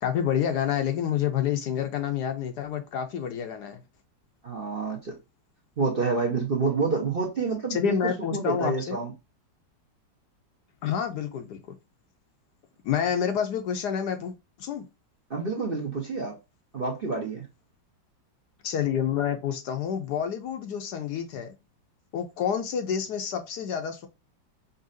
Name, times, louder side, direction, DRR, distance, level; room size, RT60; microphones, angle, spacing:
voice 1, 0.0-3.8 7.7-9.0 10.8-11.6 12.8-14.8 18.6-21.5 22.1-24.1, left 8 dB, 70° left, 1.1 m, -28 dB
voice 2, 4.4-5.1 5.8-8.0 8.3-9.1 15.3-16.4 16.7-17.5, right 4 dB, 40° right, 0.8 m, -28 dB
5.4 x 2.8 x 2.5 m
omnidirectional pair, 2.0 m